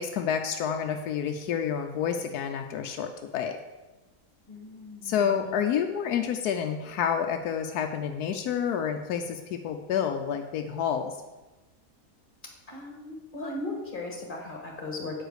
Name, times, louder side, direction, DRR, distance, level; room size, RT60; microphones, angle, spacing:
voice 1, 0.0-3.5 5.0-11.1, left 8 dB, 80° left, 5 dB, 1.1 m, -29 dB
voice 2, 4.5-5.5 12.7-15.2, left 2 dB, 35° left, 0 dB, 2.0 m, -37 dB
8.6 x 5.0 x 6.4 m, 1.1 s
omnidirectional pair, 1.6 m